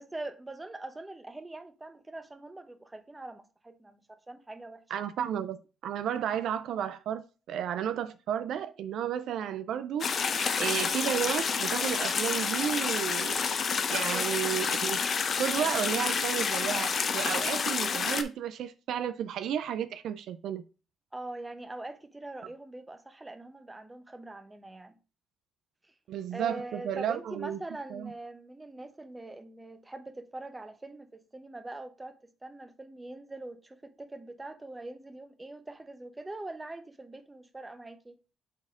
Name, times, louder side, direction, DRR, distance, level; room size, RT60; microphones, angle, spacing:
voice 1, 0.0-4.0 4.3-4.8 14.0-14.3 21.1-24.9 26.3-38.1, right 2 dB, 15° right, 0.9 m, -43 dB
voice 2, 4.9-13.4 13.9-15.0 15.4-20.6 26.1-27.6 27.9-28.1, right 9 dB, 75° right, 0.4 m, -33 dB
sound 1, 10.0-18.2, left 5 dB, 50° left, 0.7 m, -29 dB
6.1 x 4.2 x 3.7 m
cardioid pair, 90°, 0 cm